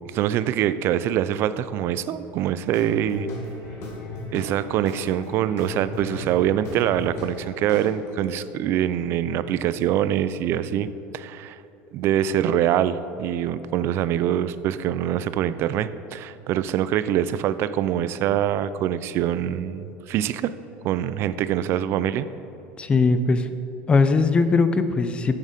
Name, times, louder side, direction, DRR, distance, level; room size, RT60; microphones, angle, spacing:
voice 1, 0.1-3.3 4.3-10.9 11.1-11.6 11.9-20.5 20.8-22.3, right 11 dB, 45° right, 14 dB, 0.3 m, -24 dB
Guitar / Drum, 2.7-8.3, left 1 dB, 50° left, 1.8 m, -36 dB
voice 2, 22.8-23.5 23.9-25.4, left 4 dB, 20° left, 10 dB, 0.4 m, -20 dB
6.9 x 6.5 x 5.2 m, 2.8 s
supercardioid pair, 140°, 6 cm